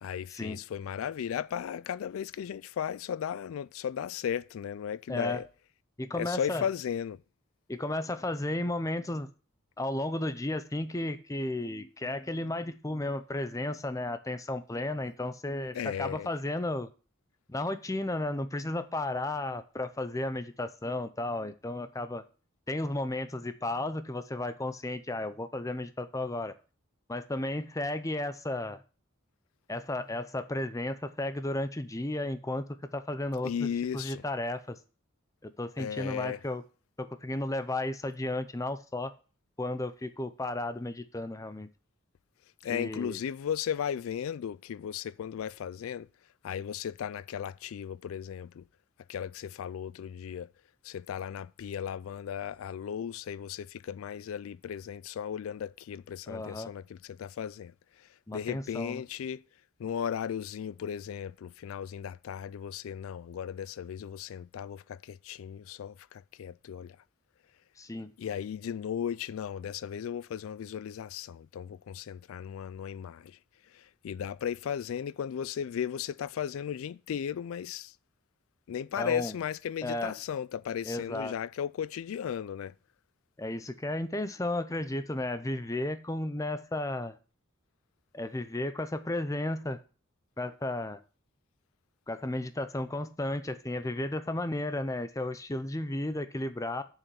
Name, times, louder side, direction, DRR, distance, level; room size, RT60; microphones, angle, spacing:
voice 1, 0.0-5.5 6.1-7.2 15.7-16.3 33.4-34.2 35.8-36.4 42.6-46.1 46.4-48.6 49.1-50.5 50.8-57.7 58.0-59.4 59.8-67.0 68.2-73.4 73.7-77.9 78.7-82.7, left 8 dB, 90° left, 0.3 m, -36 dB
voice 2, 5.1-5.4 6.0-6.7 7.7-9.3 9.8-16.9 17.5-22.2 22.7-26.5 27.1-28.8 29.7-32.6 32.9-33.7 33.9-34.8 35.4-36.6 37.0-39.1 39.6-41.7 42.7-43.2 56.3-56.7 58.3-59.0 67.8-68.1 79.0-79.3 79.8-80.1 80.8-81.3 83.4-87.2 88.1-89.8 90.4-91.0 92.1-96.8, left 1 dB, 15° left, 0.6 m, -33 dB
7.0 x 5.8 x 7.0 m
head